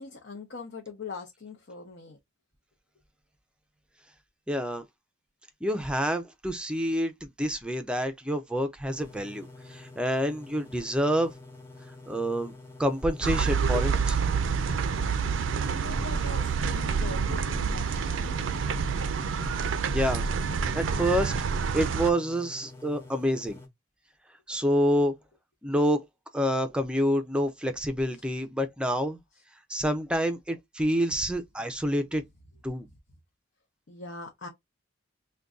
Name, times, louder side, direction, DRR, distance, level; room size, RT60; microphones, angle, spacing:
voice 1, 0.0-2.2 15.6-18.3 28.1-28.2 33.9-34.5, left 4 dB, 60° left, 0.7 m, -42 dB
voice 2, 4.5-4.8 5.6-11.3 12.1-12.5 12.8-14.2 19.9-20.3 20.7-21.3 21.7-23.6 24.5-25.1 25.6-26.0 26.3-29.2 29.7-32.2 32.6-32.9, equal, 5° right, 0.5 m, -27 dB
sound 1, 8.9-23.7, left 2 dB, 15° left, 0.8 m, -48 dB
sound 2, 13.2-22.1, right 5 dB, 80° right, 0.4 m, -28 dB
2.5 x 2.2 x 3.6 m
head